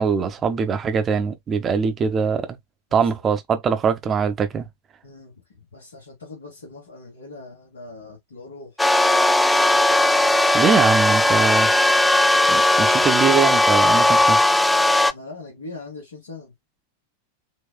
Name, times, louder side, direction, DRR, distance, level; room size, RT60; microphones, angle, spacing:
voice 1, 0.0-2.6 2.9-4.7 10.5-11.7 12.5-14.4, right 6 dB, 25° right, 1.0 m, -22 dB
voice 2, 5.0-8.9 15.0-16.6, left 3 dB, 70° left, 2.5 m, -41 dB
sound 1, 8.8-15.1, left 1 dB, 5° left, 0.4 m, -17 dB
6.0 x 2.9 x 2.3 m
figure-of-eight pair, 90°, 0 cm